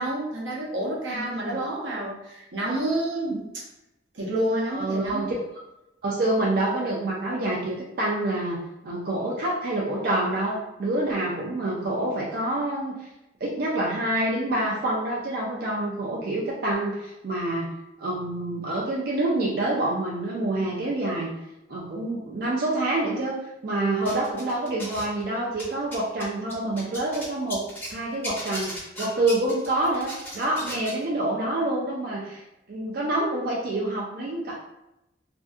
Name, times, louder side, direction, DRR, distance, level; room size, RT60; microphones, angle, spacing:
voice 1, 0.0-3.6 4.1-5.3, right 1 dB, 85° right, -3 dB, 0.7 m, -29 dB
voice 2, 1.1-1.6 4.7-5.3 6.0-13.0 13.4-17.7 18.0-21.3 21.7-23.4 23.6-32.4 32.7-34.6, right 1 dB, 55° right, -4 dB, 0.4 m, -27 dB
sound 1, 24.1-25.2 25.5-27.9 28.2-31.0, equal, 10° left, 0.7 m, -36 dB
2.6 x 2.5 x 2.3 m, 0.91 s
head